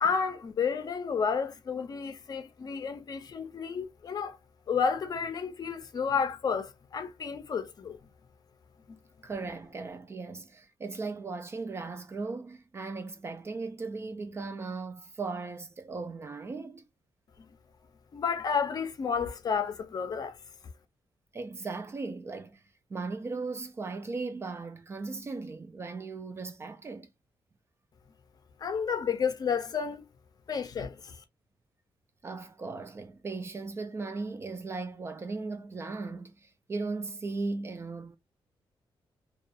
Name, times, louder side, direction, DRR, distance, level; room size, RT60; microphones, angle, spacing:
voice 1, 0.0-4.4 4.7-8.0 8.9-9.0 18.1-20.4 28.6-30.0 30.5-31.2, left 6 dB, 45° left, 0.5 m, -31 dB
voice 2, 9.2-16.8 21.3-22.6 22.9-27.1 32.2-38.2, right 3 dB, 30° right, 0.3 m, -37 dB
2.3 x 2.3 x 2.6 m
wide cardioid pair, 150°, 9 cm